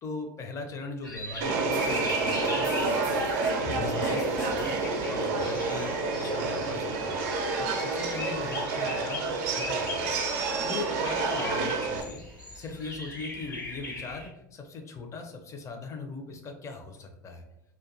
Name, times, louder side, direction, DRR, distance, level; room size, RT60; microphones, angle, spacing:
voice 1, 0.0-7.2 7.6-10.1 10.6-12.2 12.5-17.4, left 3 dB, 30° left, 4 dB, 0.5 m, -40 dB
sound 1, 1.0-14.3, left 2 dB, 90° left, 0.6 m, -40 dB
Subway metro underground, 1.4-12.0, right 3 dB, 55° right, 0.5 m, -29 dB
sound 2, 1.7-4.9, left 3 dB, 55° left, 0.8 m, -39 dB
2.4 x 2.2 x 2.5 m, 0.86 s
figure-of-eight pair, 80°, 11 cm